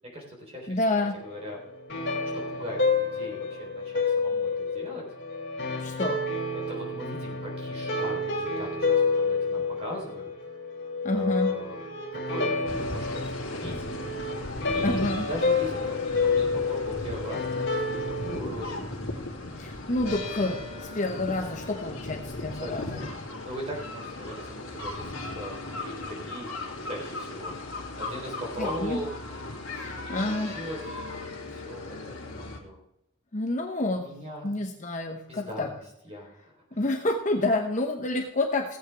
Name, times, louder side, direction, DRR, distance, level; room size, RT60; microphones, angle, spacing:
voice 1, 0.1-0.7 1.2-1.6 2.3-5.0 6.7-10.3 11.1-11.8 12.1-13.7 14.7-18.9 22.5-23.1 23.5-26.5 26.8-27.5 28.0-29.1 30.0-30.8 31.5-32.8 33.9-34.5 35.3-35.8 36.1-36.5, equal, 30° right, -1 dB, 3.6 m, -39 dB
voice 2, 0.7-1.2 5.8-6.2 11.0-11.6 14.8-15.3 19.6-23.0 28.6-29.0 29.7-30.6 33.3-34.1 34.4-35.7 36.7-38.8, left 2 dB, 35° left, 3 dB, 0.9 m, -28 dB
sound 1, 0.9-18.4, left 3 dB, 55° left, 2.8 m, -29 dB
sound 2, 12.7-32.6, left 2 dB, 80° left, 2.7 m, -37 dB
17.0 x 8.1 x 3.4 m, 0.80 s
head